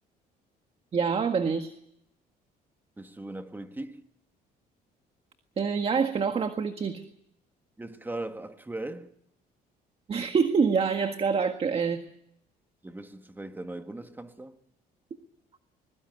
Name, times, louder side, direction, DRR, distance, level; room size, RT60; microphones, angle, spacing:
voice 1, 0.9-1.7 5.6-7.0 10.1-12.0, right 5 dB, 35° right, 1.7 m, -26 dB
voice 2, 3.0-4.0 7.8-9.1 12.8-14.6, right 2 dB, 10° right, 1.8 m, -39 dB
22.0 x 21.0 x 9.3 m
cardioid pair, 110°, 17 cm